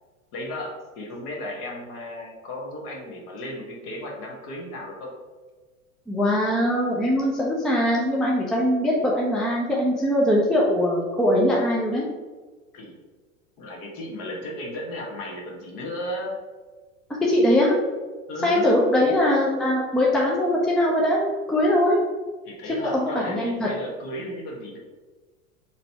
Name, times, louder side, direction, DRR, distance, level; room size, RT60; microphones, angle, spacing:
voice 1, 0.3-5.1 12.7-12.9 13.6-16.4 18.3-18.8 22.5-24.8, left 1 dB, 45° left, 0 dB, 1.3 m, -34 dB
voice 2, 6.1-12.0 17.2-17.8 18.4-22.0 22.8-23.7, left 1 dB, ahead, -3 dB, 0.4 m, -21 dB
3.9 x 2.9 x 4.5 m, 1.3 s
figure-of-eight pair, 90°, 42 cm